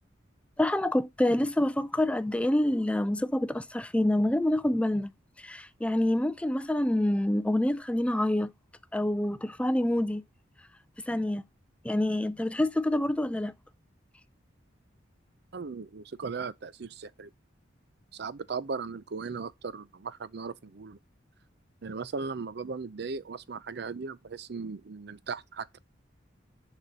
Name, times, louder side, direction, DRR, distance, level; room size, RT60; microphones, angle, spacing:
voice 1, 0.6-5.1 5.4-8.5 8.9-10.2 11.1-11.4 11.8-13.5, left 1 dB, 5° left, 0.4 m, -27 dB
voice 2, 15.5-17.3 18.1-21.0 21.8-25.8, right 4 dB, 60° right, 0.6 m, -37 dB
6.9 x 6.0 x 5.4 m
head